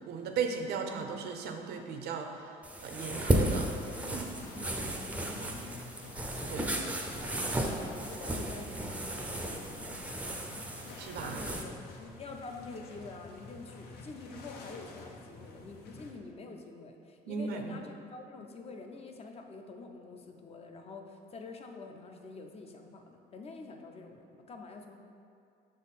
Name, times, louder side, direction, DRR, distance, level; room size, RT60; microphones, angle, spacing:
voice 1, 0.1-2.5 2.8-3.7 4.1-4.3 6.5-6.7 11.0-11.4 17.3-17.7, right 6 dB, 70° right, 5 dB, 0.6 m, -36 dB
sound 1, 2.6-11.6, right 1 dB, 10° right, 0.5 m, -34 dB
sound 2, 3.1-16.1, left 3 dB, 75° left, 0.7 m, -50 dB
voice 2, 4.5-6.0 6.5-25.0, left 3 dB, 35° left, 3 dB, 0.6 m, -47 dB
6.1 x 3.8 x 4.1 m, 2.4 s
cardioid pair, 110°, 17 cm